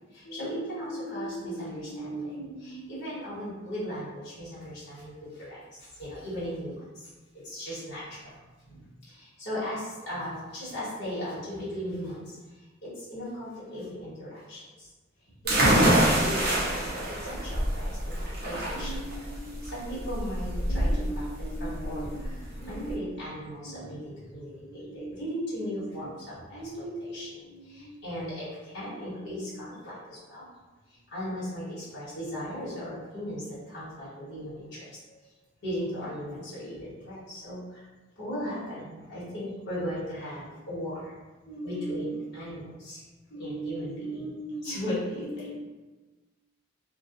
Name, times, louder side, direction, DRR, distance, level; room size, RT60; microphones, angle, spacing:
voice 1, 0.1-8.4 8.6-14.9 15.2-18.1 18.4-30.4 30.9-35.2 35.6-37.9 38.2-41.1 41.4-43.0 43.3-45.5, equal, 60° left, -11 dB, 1.5 m, -37 dB
sound 1, 15.5-22.9, right 1 dB, 50° right, 0.6 m, -26 dB
2.7 x 2.6 x 2.5 m, 1.2 s
head